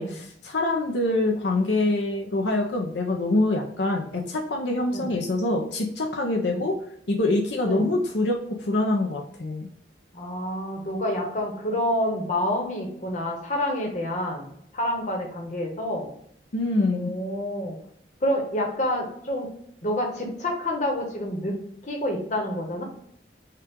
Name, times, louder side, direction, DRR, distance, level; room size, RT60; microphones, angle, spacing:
voice 1, 0.0-6.8 7.1-9.7 16.5-17.1, left 2 dB, 80° left, 0 dB, 0.7 m, -25 dB
voice 2, 10.1-16.1 16.9-17.8 18.2-19.5 19.8-22.8, left 1 dB, 45° left, 1 dB, 1.1 m, -28 dB
5.7 x 2.4 x 3.6 m, 0.69 s
head